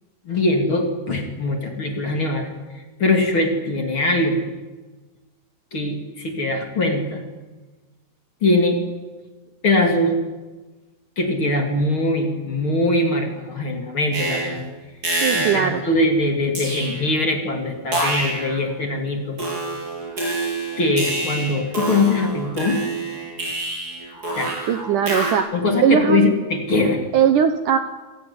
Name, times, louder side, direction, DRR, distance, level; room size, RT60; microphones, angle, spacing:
voice 1, 0.2-2.5 3.0-4.5 5.7-7.2 8.4-8.8 9.6-10.2 11.2-14.6 15.3-19.4 20.8-22.8 24.3-24.5 25.5-27.1, left 2 dB, 35° left, 3 dB, 3.1 m, -21 dB
sound 1, 14.1-14.6 15.0-15.7 16.5-17.2 17.9-18.6 19.4-25.3, right 2 dB, 20° right, 7.6 m, -26 dB
voice 2, 15.2-15.8 24.7-25.5 25.8-26.3 27.1-27.8, right 8 dB, 65° right, 8 dB, 2.2 m, -19 dB
27.5 x 18.0 x 9.8 m, 1.3 s
omnidirectional pair, 4.6 m